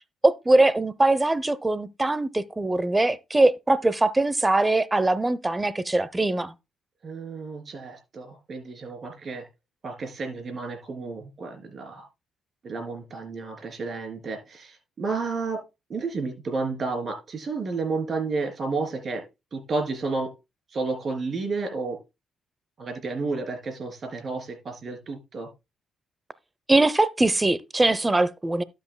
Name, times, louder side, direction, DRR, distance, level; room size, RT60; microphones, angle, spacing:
voice 1, 0.2-6.5 26.7-28.6, right 2 dB, 15° right, 0.7 m, -22 dB
voice 2, 7.0-9.4 9.8-12.0 12.6-15.6 15.9-19.2 19.5-20.3 20.7-22.0 22.8-25.5, right 4 dB, 45° right, 3.3 m, -31 dB
12.0 x 8.1 x 2.2 m
cardioid pair, 90°, 0 cm